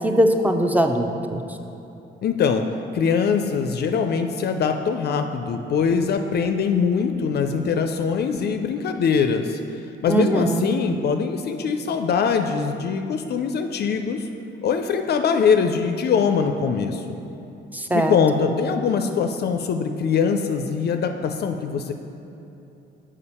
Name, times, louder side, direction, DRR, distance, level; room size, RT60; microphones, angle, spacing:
voice 1, 0.0-1.4 10.1-10.8 17.7-18.5, right 1 dB, 10° right, 5 dB, 0.5 m, -21 dB
voice 2, 2.2-2.7 2.9-9.6 10.0-14.3 14.6-17.2 17.9-21.9, left 6 dB, 55° left, 6 dB, 0.4 m, -22 dB
6.9 x 5.0 x 4.2 m, 3.0 s
cardioid pair, 90°, 20 cm